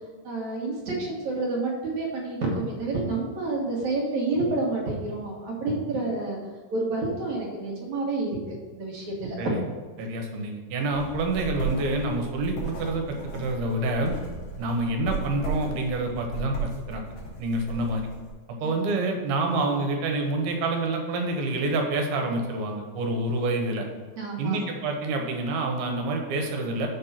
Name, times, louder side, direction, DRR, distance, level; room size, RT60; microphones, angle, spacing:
voice 1, 0.2-6.4 6.7-8.4 8.7-9.4 18.6-18.8 24.2-24.6, right 2 dB, 60° right, -2 dB, 2.3 m, -29 dB
voice 2, 10.0-14.1 14.6-17.0 17.4-18.1 18.5-23.9 24.4-26.9, right 2 dB, 75° right, 2 dB, 2.9 m, -27 dB
sound 1, 10.9-18.3, right 3 dB, 65° left, 3.6 m, -35 dB
7.5 x 5.3 x 5.7 m, 1.4 s
omnidirectional pair, 4.6 m